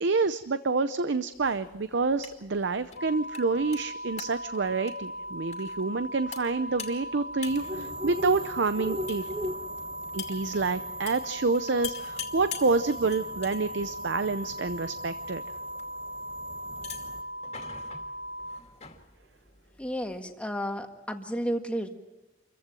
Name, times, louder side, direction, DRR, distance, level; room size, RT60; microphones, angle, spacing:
voice 1, 0.0-9.2 10.1-15.4, right 4 dB, 65° right, 12 dB, 0.7 m, -28 dB
sound 1, 1.3-20.2, left 7 dB, 35° left, 2.5 m, -47 dB
sound 2, 3.0-18.6, equal, 55° left, 0.9 m, -39 dB
sound 3, 7.5-17.2, equal, 30° right, 1.4 m, -41 dB
voice 2, 19.8-21.9, equal, 5° left, 4 dB, 1.7 m, -32 dB
27.5 x 15.0 x 7.7 m, 1.1 s
head